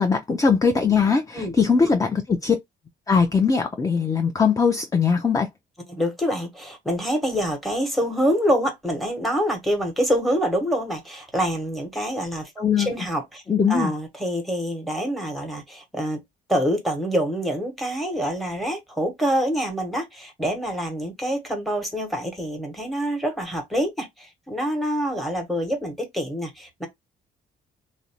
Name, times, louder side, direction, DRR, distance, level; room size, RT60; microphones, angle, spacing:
voice 1, 0.0-2.6 3.1-5.5 12.6-12.9 13.5-13.9, left 5 dB, 15° left, 0.4 m, -20 dB
voice 2, 5.9-13.4 13.7-16.2 16.5-26.9, equal, ahead, 1.0 m, -26 dB
2.5 x 2.1 x 2.8 m
cardioid pair, 90°, 20 cm